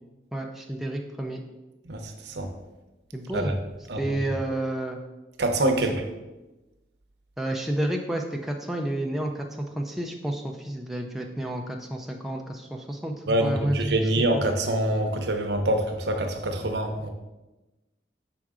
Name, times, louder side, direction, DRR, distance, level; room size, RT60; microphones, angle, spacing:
voice 1, 0.3-1.4 3.1-3.6 3.9-5.0 7.4-13.1 13.4-13.8 14.1-14.2, right 1 dB, ahead, 1 dB, 0.4 m, -30 dB
voice 2, 1.8-2.5 3.3-3.5 3.9-4.2 5.4-6.0 13.3-17.1, right 1 dB, 85° right, 5 dB, 0.8 m, -25 dB
6.0 x 4.4 x 3.6 m, 1.1 s
head